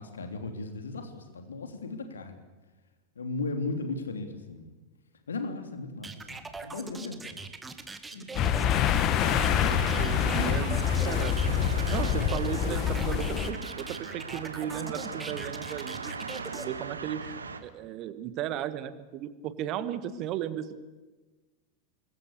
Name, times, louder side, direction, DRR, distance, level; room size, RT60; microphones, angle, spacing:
voice 1, 0.0-2.4 3.1-4.7 5.3-7.4 8.1-8.4, left 3 dB, 70° left, 6 dB, 3.1 m, -36 dB
sound 1, 6.0-16.7, right 3 dB, 10° right, 2.0 m, -41 dB
sound 2, 8.3-13.5, left 9 dB, 35° left, 1.9 m, -26 dB
sound 3, 9.2-17.6, right 4 dB, 75° right, 2.0 m, -39 dB
voice 2, 9.6-11.4 11.9-16.1 16.5-20.7, right 11 dB, 40° right, 13 dB, 1.7 m, -35 dB
27.0 x 22.5 x 7.0 m, 1.2 s
figure-of-eight pair, 90°, 0 cm